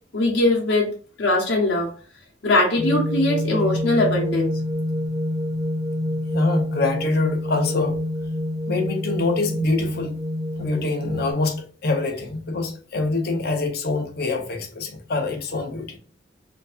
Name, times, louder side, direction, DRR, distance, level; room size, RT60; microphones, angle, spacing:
voice 1, 0.1-0.9 1.2-1.9 2.4-4.5, left 2 dB, 85° left, 0.9 m, -20 dB
sound 1, 2.8-11.3, left 1 dB, 20° right, 0.8 m, -27 dB
voice 2, 6.3-8.0 8.7-10.2 10.6-16.0, left 3 dB, 60° left, 0.8 m, -25 dB
4.6 x 2.7 x 2.5 m
head